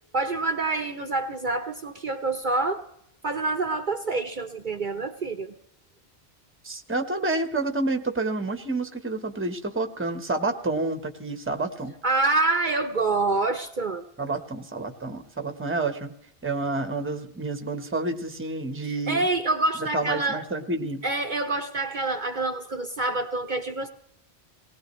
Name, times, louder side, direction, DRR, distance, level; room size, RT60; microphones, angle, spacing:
voice 1, 0.1-2.8 3.2-5.5 12.0-14.0 19.1-20.4 21.0-23.9, right 3 dB, 50° right, 7 dB, 1.0 m, -26 dB
voice 2, 6.6-11.9 14.2-16.1 16.4-19.3 19.9-21.0, right 2 dB, 10° right, 6 dB, 1.1 m, -29 dB
19.5 x 18.5 x 3.1 m, 0.74 s
omnidirectional pair, 1.1 m